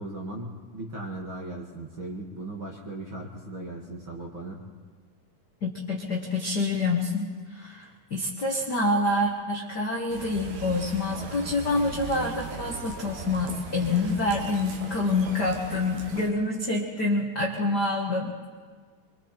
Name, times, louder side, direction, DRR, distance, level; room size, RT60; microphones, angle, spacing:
voice 1, 0.0-4.6, right 2 dB, 40° right, -1 dB, 1.9 m, -37 dB
voice 2, 5.6-18.3, left 2 dB, 70° left, -1 dB, 0.9 m, -27 dB
sound 1, 10.1-16.3, right 5 dB, 70° right, 3.5 m, -39 dB
25.0 x 24.5 x 4.5 m, 1.5 s
omnidirectional pair, 4.8 m